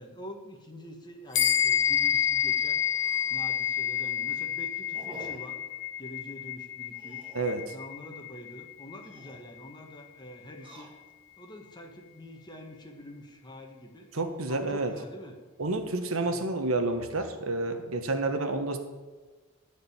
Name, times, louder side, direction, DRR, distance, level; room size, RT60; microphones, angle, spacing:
voice 1, 0.0-2.8 3.3-5.6 6.0-7.3 7.7-10.9 11.4-14.1 14.5-15.4, equal, 20° left, 3 dB, 1.6 m, -46 dB
sound 1, 1.2-1.4 1.8-1.9 2.2-2.3 2.9-3.6 4.0-4.3 4.9-5.6 6.9-7.7 8.9-9.5 10.5-11.3 11.9-12.5, right 1 dB, 25° right, 1.7 m, -50 dB
sound 2, 1.3-11.1, left 10 dB, 60° left, 1.5 m, -30 dB
voice 2, 14.1-14.9 15.6-18.8, right 2 dB, 80° right, 6 dB, 1.5 m, -29 dB
15.5 x 5.2 x 8.8 m, 1.3 s
head